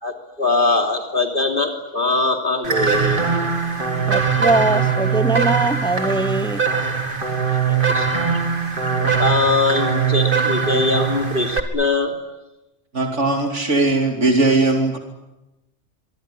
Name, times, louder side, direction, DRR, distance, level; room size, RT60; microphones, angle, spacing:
voice 1, 0.0-3.2 7.7-8.1 9.0-12.1, left 3 dB, 45° left, 3.3 m, -21 dB
sound 1, 2.6-11.6, right 5 dB, 45° right, 2.5 m, -21 dB
voice 2, 4.1-6.6, right 2 dB, 5° left, 0.7 m, -21 dB
voice 3, 12.9-15.0, right 2 dB, 80° right, 3.1 m, -18 dB
25.0 x 24.0 x 9.7 m
omnidirectional pair, 1.2 m